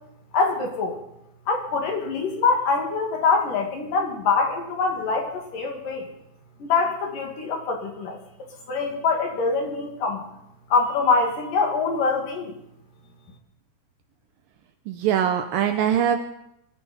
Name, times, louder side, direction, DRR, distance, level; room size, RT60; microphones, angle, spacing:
voice 1, 0.3-1.0 1.5-6.1 6.6-8.2 8.7-10.2 10.7-12.5, left 4 dB, 60° left, 2 dB, 3.6 m, -24 dB
voice 2, 14.9-16.2, right 9 dB, 75° right, 7 dB, 2.2 m, -22 dB
23.0 x 14.0 x 4.3 m, 0.79 s
omnidirectional pair, 4.7 m